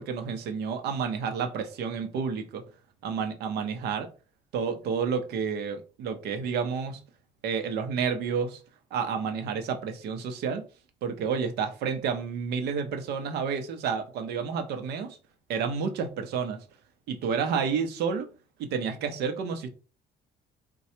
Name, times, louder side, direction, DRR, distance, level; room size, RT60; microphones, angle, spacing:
voice 1, 0.0-2.6 3.0-4.1 4.5-7.0 7.4-8.6 8.9-10.6 11.0-15.2 15.5-16.6 17.1-18.3 18.6-19.7, right 6 dB, 75° right, 0.7 m, -30 dB
4.2 x 2.3 x 2.8 m
cardioid pair, 110°, 17 cm